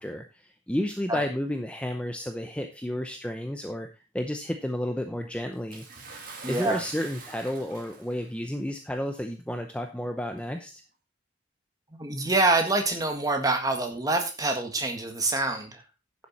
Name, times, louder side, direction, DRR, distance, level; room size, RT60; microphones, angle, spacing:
voice 1, 0.0-3.9 4.1-5.8 6.5-10.8, left 1 dB, 5° left, 5 dB, 0.7 m, -32 dB
Bathtub (filling or washing) / Splash splatter, 5.7-8.3 9.2-9.3 10.3-10.4, right 4 dB, 45° right, 2.4 m, -44 dB
voice 2, 6.4-6.8 11.9-15.8, right 2 dB, 20° right, 5 dB, 1.6 m, -26 dB
11.0 x 7.3 x 4.1 m, 0.30 s
head